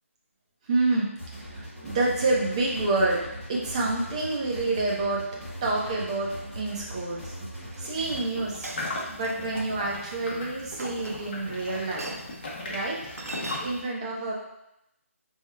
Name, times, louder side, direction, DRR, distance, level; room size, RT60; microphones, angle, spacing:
voice 1, 0.6-1.1 1.5-3.2 3.5-5.2 5.6-7.3 7.8-8.7 9.1-12.1 12.6-13.0 13.6-14.3, right 2 dB, 25° right, -3 dB, 0.8 m, -28 dB
sound 1, 1.2-8.2, equal, ahead, 1.1 m, -40 dB
Chink clink, 7.7-7.9 8.6-9.6 10.7-11.5 12.0-12.4 13.2-13.6, right 2 dB, 85° right, 0.6 m, -39 dB
sound 2, 7.9-13.8, left 2 dB, 45° left, 1.0 m, -38 dB
4.9 x 3.6 x 2.2 m, 0.87 s
figure-of-eight pair, 165°, 8 cm